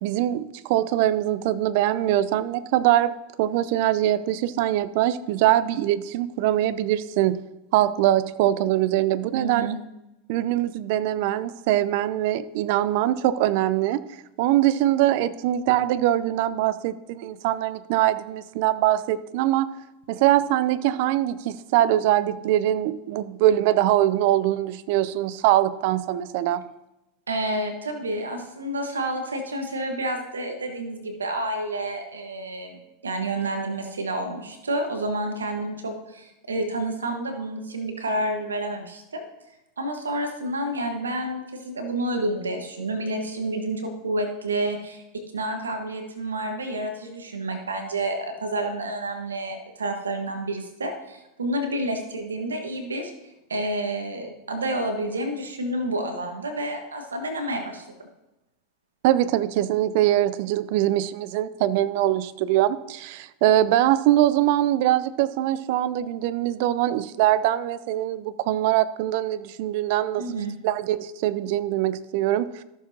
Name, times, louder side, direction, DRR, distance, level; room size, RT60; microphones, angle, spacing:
voice 1, 0.0-7.4 7.7-9.7 10.3-14.0 14.4-19.7 20.1-26.7 59.0-70.2 70.6-72.5, right 13 dB, 60° right, 16 dB, 0.5 m, -22 dB
voice 2, 9.3-9.8 27.3-39.2 39.8-45.0 45.3-53.1 53.5-57.9 70.2-70.5, right 1 dB, 90° right, 5 dB, 1.4 m, -29 dB
14.0 x 6.9 x 2.8 m, 0.94 s
hypercardioid pair, 90°, 0 cm